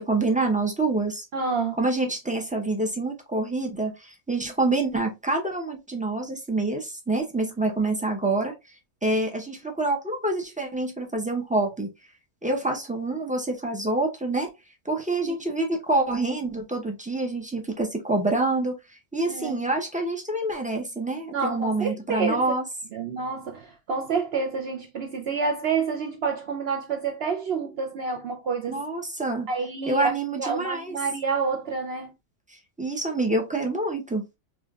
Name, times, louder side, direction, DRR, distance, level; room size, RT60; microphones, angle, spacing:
voice 1, 0.0-1.2 1.8-8.5 9.0-11.9 12.4-14.5 14.8-18.7 19.1-22.6 28.7-29.5 29.9-31.0 32.8-34.2, right 2 dB, 10° right, 0.5 m, -26 dB
voice 2, 1.3-1.8 15.2-15.3 19.3-19.6 21.3-22.5 22.9-28.8 29.5-30.1 30.4-32.1, right 5 dB, 60° right, 0.7 m, -28 dB
4.9 x 2.4 x 2.3 m
omnidirectional pair, 1.5 m